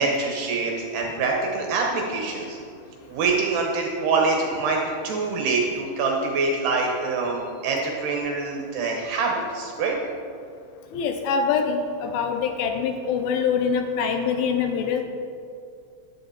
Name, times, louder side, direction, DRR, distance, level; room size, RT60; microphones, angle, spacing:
voice 1, 0.0-2.6 3.1-10.0, right 3 dB, 70° right, 0 dB, 2.7 m, -25 dB
voice 2, 10.9-15.0, left 6 dB, 80° left, 5 dB, 3.1 m, -24 dB
15.5 x 11.5 x 4.3 m, 2.4 s
omnidirectional pair, 5.9 m